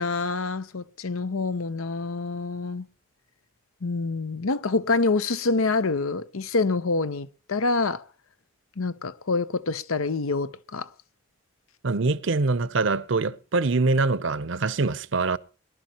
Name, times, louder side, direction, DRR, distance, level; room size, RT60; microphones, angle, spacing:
voice 1, 0.0-2.9 3.8-8.0 8.8-10.9, left 3 dB, 85° left, 0.8 m, -26 dB
voice 2, 11.8-15.4, right 3 dB, 60° right, 0.7 m, -24 dB
23.0 x 11.5 x 3.0 m
head